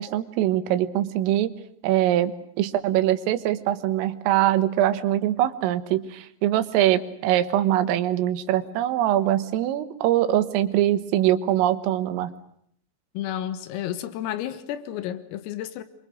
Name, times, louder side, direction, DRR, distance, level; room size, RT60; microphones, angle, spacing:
voice 1, 0.0-1.5 1.8-12.3, right 12 dB, 80° right, 3.9 m, -23 dB
voice 2, 13.2-15.8, left 11 dB, 85° left, 4.0 m, -31 dB
27.5 x 25.0 x 6.3 m
omnidirectional pair, 5.9 m